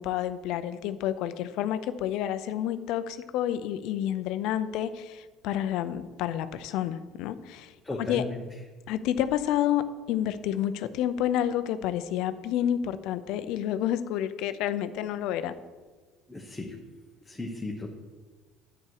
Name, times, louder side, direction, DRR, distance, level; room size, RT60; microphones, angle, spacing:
voice 1, 0.0-8.2 8.9-15.5, left 11 dB, 70° left, 12 dB, 0.7 m, -29 dB
voice 2, 7.8-8.4 16.3-16.7 17.2-17.9, left 2 dB, 10° left, -1 dB, 1.2 m, -35 dB
9.9 x 8.1 x 4.8 m, 1.3 s
supercardioid pair, 115°, 0 cm